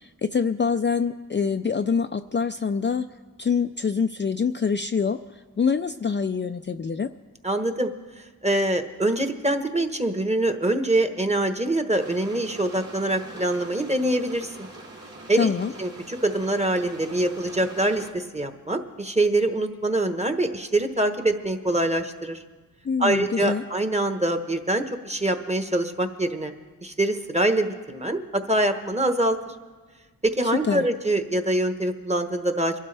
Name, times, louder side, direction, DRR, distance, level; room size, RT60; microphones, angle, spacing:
voice 1, 0.0-3.1 3.4-7.1 15.4-15.7 22.8-23.6 30.4-30.9, left 5 dB, 30° left, 7 dB, 0.4 m, -25 dB
voice 2, 7.4-7.9 8.4-14.7 15.3-15.5 15.8-22.4 23.0-26.5 26.8-29.5 30.2-32.7, right 1 dB, 20° right, 6 dB, 1.2 m, -24 dB
sound 1, 12.0-18.1, right 2 dB, 45° right, 2.3 m, -43 dB
23.0 x 12.0 x 3.4 m, 1.4 s
cardioid pair, 45°, 37 cm